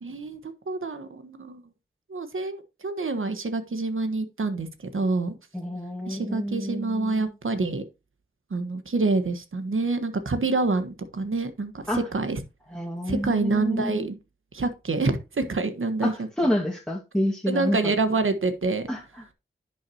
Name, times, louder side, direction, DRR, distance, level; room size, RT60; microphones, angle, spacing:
voice 1, 0.0-1.6 2.1-4.7 4.9-5.3 6.1-7.8 8.5-12.4 13.1-14.2 14.5-16.3 17.5-18.9, right 3 dB, 75° right, 1.4 m, -27 dB
voice 2, 5.5-7.3 11.9-12.1 12.7-14.1 16.0-17.9 18.9-19.3, equal, 5° left, 2.0 m, -28 dB
10.5 x 6.1 x 2.9 m
wide cardioid pair, 50°, 21 cm